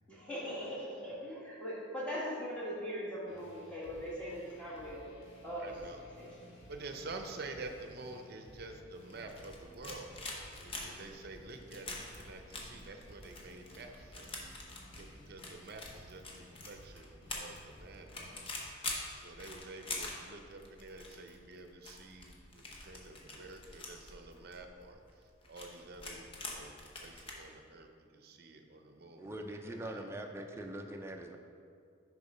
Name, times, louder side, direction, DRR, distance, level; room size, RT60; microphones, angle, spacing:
voice 1, 0.1-5.0 5.4-6.3, equal, 5° left, -8 dB, 1.5 m, -40 dB
sound 1, 3.3-18.6, equal, 70° left, 1.8 m, -56 dB
voice 2, 5.6-6.0 6.7-10.1 10.6-14.3 14.9-18.6 19.1-25.0 25.5-26.7 27.0-31.1, right 3 dB, 50° right, 5 dB, 0.7 m, -49 dB
sound 2, 9.1-27.3, left 2 dB, 30° left, 0.9 m, -45 dB
voice 3, 29.2-31.4, right 1 dB, 15° right, 3 dB, 0.5 m, -42 dB
6.8 x 4.8 x 5.4 m, 2.4 s
head